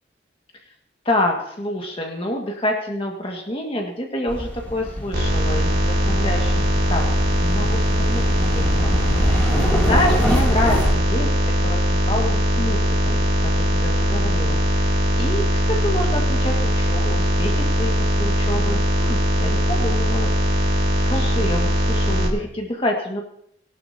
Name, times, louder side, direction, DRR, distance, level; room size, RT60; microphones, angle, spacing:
voice 1, 1.1-6.6 6.9-7.1 7.4-11.3 11.6-13.2 13.5-23.2, left 1 dB, 30° left, 1 dB, 1.7 m, -27 dB
sound 1, 4.3-10.9, equal, 10° left, 2.7 m, -25 dB
sound 2, 5.1-22.3, equal, 60° right, 2.5 m, -20 dB
19.0 x 11.5 x 2.8 m, 0.71 s
head